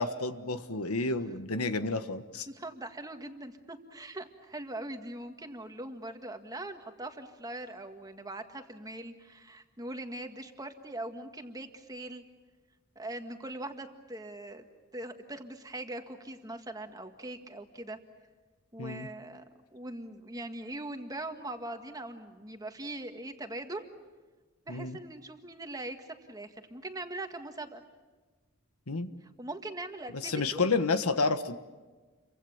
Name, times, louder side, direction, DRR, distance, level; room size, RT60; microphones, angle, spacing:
voice 1, 0.0-2.5 18.8-19.1 24.7-25.0 28.9-29.1 30.2-31.6, left 3 dB, 90° left, 10 dB, 1.4 m, -30 dB
voice 2, 2.5-12.2 13.0-14.6 14.9-18.0 18.7-19.4 19.7-23.8 24.7-27.8 29.4-30.6, right 1 dB, 15° right, 6 dB, 1.8 m, -41 dB
29.5 x 24.5 x 7.2 m, 1.3 s
head